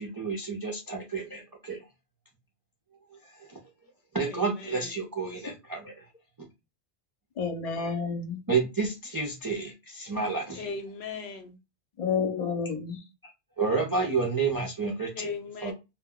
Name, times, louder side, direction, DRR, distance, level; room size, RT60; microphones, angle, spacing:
voice 1, 0.0-1.8 3.4-3.6 4.1-6.0 8.5-10.7 13.2-13.3 13.6-15.3 15.6-15.7, right 4 dB, 35° right, 0.3 m, -30 dB
voice 2, 4.3-4.9 10.6-11.5 15.2-15.7, left 4 dB, 80° left, 0.9 m, -38 dB
voice 3, 7.4-8.4 12.0-13.0, left 5 dB, 45° left, 0.6 m, -30 dB
2.2 x 2.1 x 3.6 m
omnidirectional pair, 1.1 m